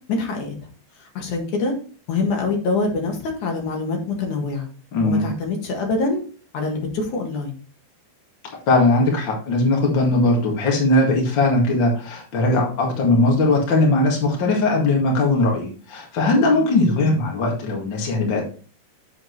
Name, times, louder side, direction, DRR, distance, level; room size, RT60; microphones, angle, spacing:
voice 1, 0.1-0.5 1.0-1.7 2.1-4.7 5.0-6.2 6.5-7.6 16.8-17.2, left 3 dB, 55° left, 1 dB, 2.3 m, -25 dB
voice 2, 4.9-5.3 8.7-18.5, left 2 dB, 90° left, -1 dB, 1.0 m, -19 dB
8.0 x 7.4 x 3.2 m, 0.39 s
omnidirectional pair, 5.6 m